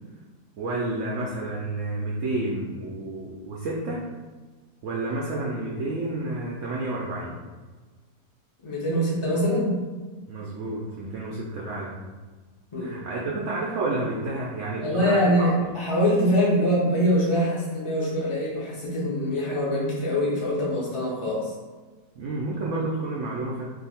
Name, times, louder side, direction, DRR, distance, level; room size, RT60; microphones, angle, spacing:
voice 1, 0.6-4.1 4.8-7.4 10.3-12.0 12.8-15.7 22.2-23.7, right 2 dB, 75° right, -4 dB, 0.6 m, -30 dB
voice 2, 8.6-9.8 12.7-13.0 14.8-21.5, equal, 50° left, -6 dB, 0.3 m, -24 dB
2.7 x 2.5 x 4.1 m, 1.3 s
omnidirectional pair, 1.8 m